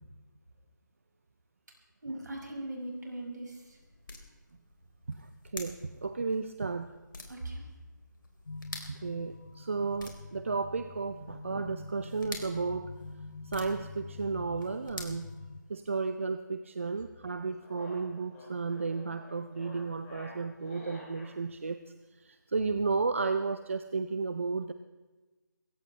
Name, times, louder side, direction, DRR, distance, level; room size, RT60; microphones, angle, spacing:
voice 1, 2.0-3.8 7.3-7.6, right 1 dB, 65° right, -1 dB, 5.7 m, -39 dB
sound 1, 2.8-16.0, left 2 dB, 90° left, 3.5 m, -50 dB
voice 2, 5.5-6.9 8.9-12.9 13.4-15.3 15.7-21.8 22.2-24.7, right 4 dB, 40° right, 10 dB, 0.6 m, -33 dB
sound 2, 8.5-15.6, left 3 dB, 55° left, 0.6 m, -46 dB
sound 3, 17.2-21.3, left 2 dB, 10° left, 3.0 m, -49 dB
22.5 x 16.5 x 3.3 m, 1.2 s
figure-of-eight pair, 170°, 11 cm